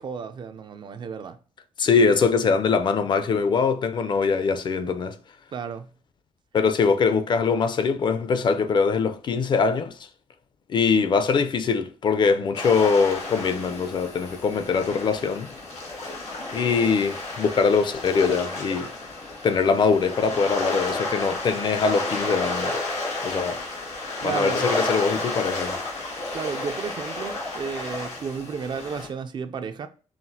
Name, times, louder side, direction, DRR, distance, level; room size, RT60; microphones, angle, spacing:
voice 1, 0.0-1.4 5.5-5.9 24.2-24.6 26.3-29.9, right 6 dB, 45° right, 0.3 m, -32 dB
voice 2, 1.8-5.2 6.5-9.9 10.7-15.5 16.5-18.9 19.4-22.7 23.2-23.6 24.2-25.8, left 5 dB, 45° left, 0.4 m, -22 dB
sound 1, 12.5-29.1, left 2 dB, 85° left, 1.9 m, -31 dB
5.7 x 2.4 x 2.6 m
wide cardioid pair, 150°, 11 cm